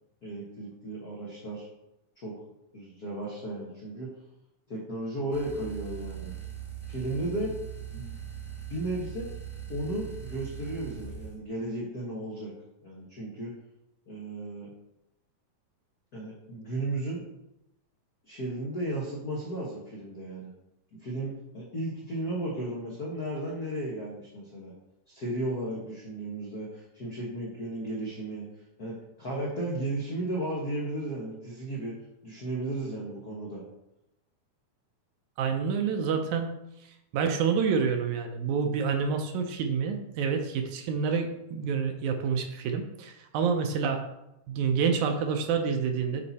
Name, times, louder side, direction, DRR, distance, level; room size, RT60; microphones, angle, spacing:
voice 1, 0.2-1.7 2.2-2.3 2.7-4.1 4.7-6.3 6.9-7.5 7.9-8.2 8.7-9.3 9.7-12.5 12.8-13.5 14.1-14.7 16.1-17.2 18.2-20.5 21.0-24.7 25.1-28.4 28.8-31.9 32.2-33.6, right 1 dB, 80° left, -4 dB, 0.8 m, -34 dB
sound 1, 5.3-11.4, right 9 dB, 5° right, 0.9 m, -40 dB
voice 2, 35.4-36.5 37.1-44.0 44.5-46.2, right 6 dB, 75° right, 5 dB, 1.9 m, -28 dB
8.4 x 4.3 x 4.1 m, 0.89 s
omnidirectional pair, 3.7 m